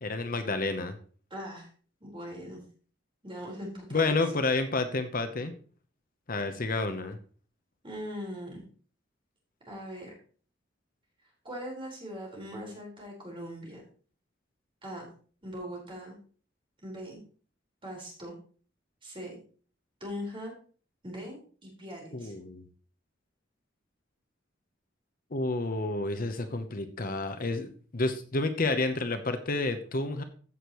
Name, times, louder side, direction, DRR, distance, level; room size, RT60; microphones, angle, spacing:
voice 1, 0.0-0.9 3.9-5.5 6.3-7.2 22.1-22.6 25.3-30.2, left 3 dB, 50° left, 8 dB, 0.9 m, -30 dB
voice 2, 1.3-1.7 2.0-2.6 3.2-4.2 7.8-8.6 9.7-10.1 11.4-13.8 14.8-15.1 15.4-16.2 16.8-17.2 17.8-18.3 19.0-19.4 20.0-20.5 21.0-22.3, equal, 30° right, -2 dB, 4.4 m, -40 dB
15.0 x 6.4 x 3.1 m, 0.41 s
head